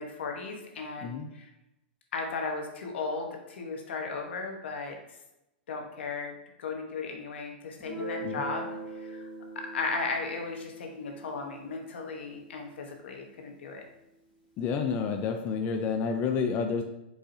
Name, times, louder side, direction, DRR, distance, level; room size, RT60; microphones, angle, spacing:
voice 1, 0.0-1.5 2.1-5.0 5.7-9.3 9.5-13.8, left 4 dB, 85° left, 2 dB, 1.1 m, -36 dB
Guitar, 7.8-13.3, right 1 dB, 5° left, 1.4 m, -42 dB
voice 2, 14.6-16.8, left 5 dB, 30° left, 4 dB, 0.4 m, -29 dB
4.8 x 3.9 x 2.7 m, 0.90 s
supercardioid pair, 150°, 6 cm